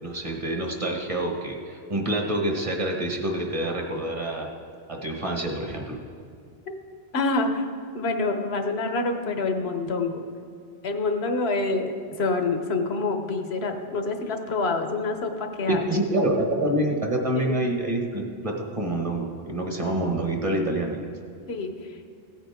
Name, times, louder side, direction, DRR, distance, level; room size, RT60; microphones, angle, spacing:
voice 1, 0.0-4.5 4.9-6.0 15.7-21.0, right 1 dB, 30° right, 1 dB, 1.4 m, -27 dB
voice 2, 7.1-7.7 7.9-10.2 10.8-16.0 17.3-17.6 21.5-22.0, left 3 dB, 75° left, 6 dB, 1.2 m, -27 dB
16.5 x 9.1 x 3.6 m, 2.4 s
omnidirectional pair, 1.1 m